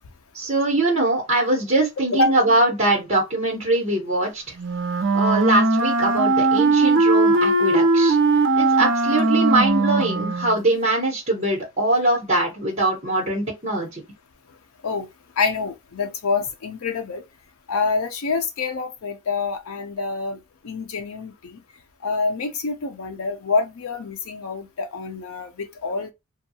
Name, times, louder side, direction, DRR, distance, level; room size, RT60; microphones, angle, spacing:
voice 1, 0.3-4.4 5.1-8.2 8.6-14.0, right 2 dB, 30° right, 0.9 m, -22 dB
Wind instrument woodwind instrument, 4.6-10.6, right 2 dB, 60° right, 0.5 m, -19 dB
voice 2, 15.4-17.2 17.7-20.4 20.6-21.6 22.0-26.1, left 4 dB, 90° left, 0.5 m, -26 dB
2.7 x 2.3 x 2.7 m
head